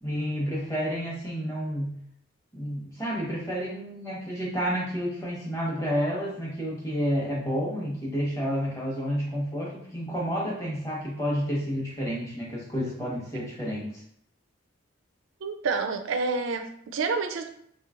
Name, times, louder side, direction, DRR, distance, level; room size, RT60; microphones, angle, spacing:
voice 1, 0.0-1.9 2.5-14.0, equal, 15° left, -4 dB, 1.0 m, -30 dB
voice 2, 15.4-17.5, right 4 dB, 70° right, 7 dB, 0.4 m, -28 dB
4.1 x 3.1 x 2.4 m, 0.66 s
head